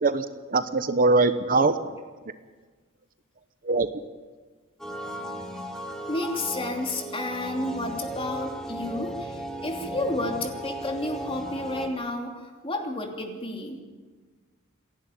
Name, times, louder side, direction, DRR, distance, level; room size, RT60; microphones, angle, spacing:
voice 1, 0.0-2.0 3.6-3.9, right 3 dB, 40° right, 11 dB, 0.9 m, -22 dB
sound 1, 4.8-11.9, right 1 dB, 5° left, 2.9 m, -36 dB
voice 2, 6.1-13.8, left 2 dB, 25° left, 2 dB, 2.9 m, -31 dB
28.0 x 11.0 x 9.2 m, 1.4 s
head